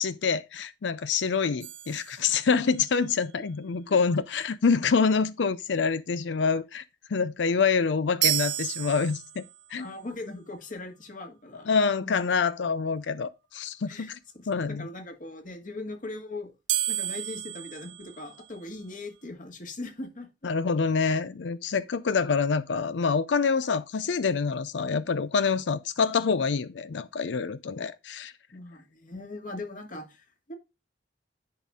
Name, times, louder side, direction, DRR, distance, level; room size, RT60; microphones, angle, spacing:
voice 1, 0.0-6.8 7.1-9.4 9.7-9.9 11.7-14.2 14.5-14.9 20.4-28.3, left 5 dB, 75° left, 0.5 m, -26 dB
sound 1, 1.6-2.9 8.2-9.7 16.7-18.8, right 14 dB, 80° right, 0.5 m, -31 dB
voice 2, 9.8-11.7 12.0-12.3 13.9-14.1 14.4-16.5 16.9-20.3 28.5-30.6, left 2 dB, 45° left, 1.9 m, -40 dB
10.5 x 4.2 x 3.6 m
head